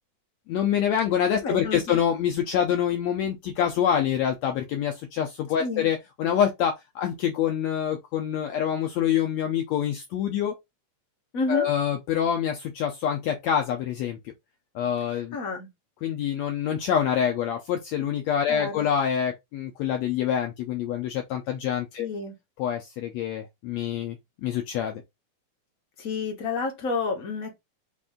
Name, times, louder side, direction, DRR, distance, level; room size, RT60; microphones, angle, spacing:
voice 1, 0.5-10.5 11.5-14.3 14.7-15.4 16.0-22.1 22.6-25.0, left 9 dB, 75° left, 1.6 m, -26 dB
voice 2, 1.4-2.0 5.6-5.9 11.3-11.7 15.3-15.7 18.5-18.9 22.0-22.3 26.0-27.5, left 4 dB, 60° left, 0.9 m, -30 dB
5.2 x 2.6 x 3.6 m
omnidirectional pair, 3.7 m